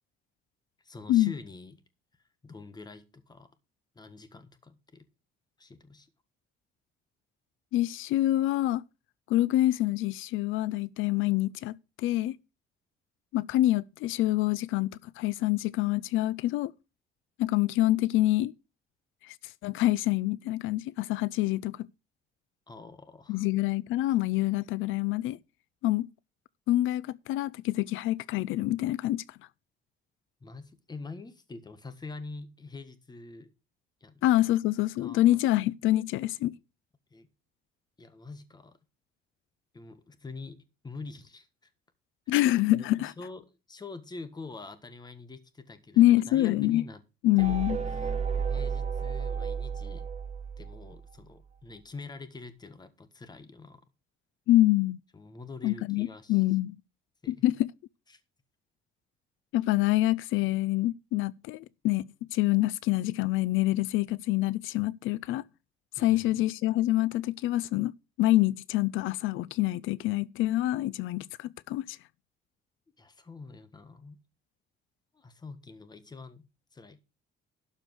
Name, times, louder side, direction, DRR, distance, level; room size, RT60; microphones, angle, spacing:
voice 1, 0.8-1.8 2.4-3.5 3.9-5.0 5.6-6.1 22.7-23.5 30.4-33.5 34.0-34.2 35.0-35.4 37.1-37.3 38.0-38.8 39.7-41.7 42.3-42.4 42.7-47.0 47.4-47.7 48.0-48.1 48.5-50.1 50.6-53.8 55.1-56.4 57.2-57.4 58.1-58.2 66.0-66.4 73.0-74.2 75.1-77.0, left 3 dB, 20° left, 1.4 m, -45 dB
voice 2, 7.7-8.8 9.3-12.4 13.3-16.7 17.4-18.5 19.2-21.9 23.3-25.4 25.8-26.1 26.7-29.4 34.2-36.5 42.3-43.1 46.0-46.8 47.2-47.8 54.5-55.0 55.6-56.8 57.3-57.7 59.5-65.4 66.0-67.9 68.2-72.0, left 15 dB, 85° left, 0.5 m, -26 dB
sound 1, 47.4-51.1, right 6 dB, 35° right, 1.3 m, -32 dB
12.0 x 5.1 x 6.3 m
cardioid pair, 130°, 20 cm